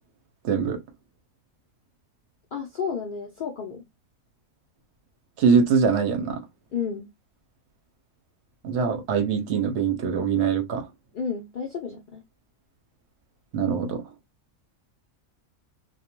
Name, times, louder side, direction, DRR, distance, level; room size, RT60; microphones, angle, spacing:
voice 1, 0.4-0.8 5.4-6.4 8.6-10.9 13.5-14.0, right 6 dB, 65° right, 0.8 m, -23 dB
voice 2, 2.5-3.8 6.7-7.1 11.1-12.2, left 6 dB, 85° left, 0.4 m, -31 dB
2.3 x 2.1 x 2.8 m
omnidirectional pair, 1.4 m